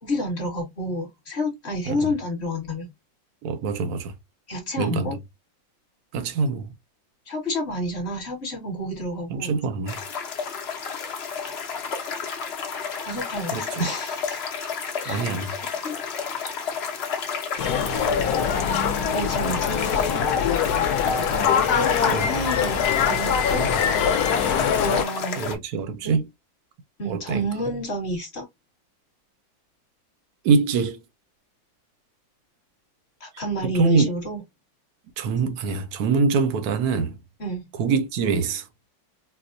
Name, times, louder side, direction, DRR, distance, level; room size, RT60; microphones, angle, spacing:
voice 1, 0.0-2.9 4.5-5.2 7.3-9.6 13.0-14.4 15.0-15.3 15.8-16.0 19.1-20.2 21.6-22.8 23.0-23.7 24.8-25.5 26.0-26.1 27.0-28.5 33.2-34.4 37.4-37.7, left 1 dB, 40° left, 1.3 m, -29 dB
voice 2, 3.4-4.1 4.8-5.2 6.1-6.7 9.3-10.0 13.5-13.9 15.1-15.6 22.1-22.3 23.5-23.8 25.4-26.3 27.1-27.5 30.4-31.0 33.6-34.1 35.2-37.2 37.8-38.7, right 5 dB, 70° right, 0.9 m, -24 dB
sound 1, 9.9-25.5, left 6 dB, 85° left, 0.5 m, -31 dB
sound 2, 17.6-25.0, left 7 dB, 65° left, 1.0 m, -23 dB
4.3 x 2.1 x 2.5 m
omnidirectional pair, 2.1 m